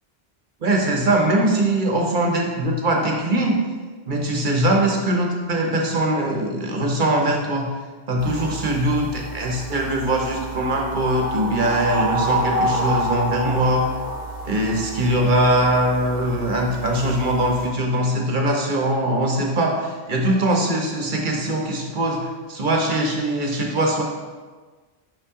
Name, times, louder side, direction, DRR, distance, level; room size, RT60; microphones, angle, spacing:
voice 1, 0.6-3.6 4.0-7.7 8.1-13.8 14.4-24.0, right 1 dB, 50° right, 1 dB, 1.0 m, -21 dB
sound 1, 8.2-17.7, right 2 dB, 35° right, 1.0 m, -28 dB
5.7 x 5.4 x 3.6 m, 1.4 s
omnidirectional pair, 1.1 m